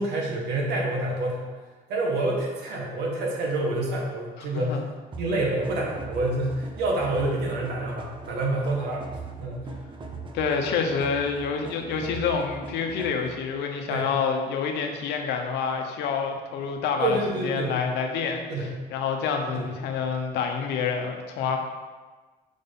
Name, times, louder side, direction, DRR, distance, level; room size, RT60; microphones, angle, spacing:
voice 1, 0.0-1.5 1.9-4.8 5.2-9.1 9.4-9.7 13.9-14.1 17.0-17.8 18.5-18.7 19.5-19.7, right 2 dB, 80° right, -1 dB, 1.7 m, -27 dB
voice 2, 4.4-4.8 10.3-17.2 17.4-21.6, left 6 dB, 85° left, 3 dB, 1.0 m, -28 dB
sound 1, 5.1-13.6, right 4 dB, 30° right, 0.7 m, -41 dB
6.3 x 4.0 x 5.5 m, 1.3 s
cardioid pair, 110°, 17 cm